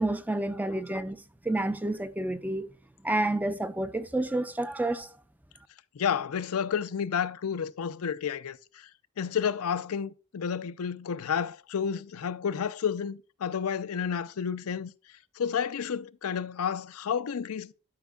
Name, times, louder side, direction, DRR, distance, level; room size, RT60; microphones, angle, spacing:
voice 1, 0.0-2.7 3.0-5.1, right 1 dB, 10° right, 0.4 m, -29 dB
voice 2, 5.9-8.9 9.2-14.9 15.4-17.7, left 7 dB, 75° left, 0.5 m, -31 dB
11.5 x 5.2 x 2.3 m
head